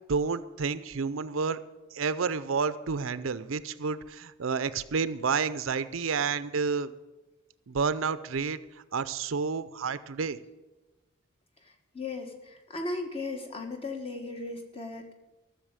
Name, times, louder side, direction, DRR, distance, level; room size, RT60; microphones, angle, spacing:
voice 1, 0.1-1.6 1.9-6.9 7.7-8.6 8.9-10.4, right 5 dB, 80° right, 14 dB, 0.6 m, -30 dB
voice 2, 11.9-15.1, left 3 dB, 30° left, 3 dB, 1.5 m, -36 dB
13.5 x 7.1 x 8.9 m, 1.1 s
head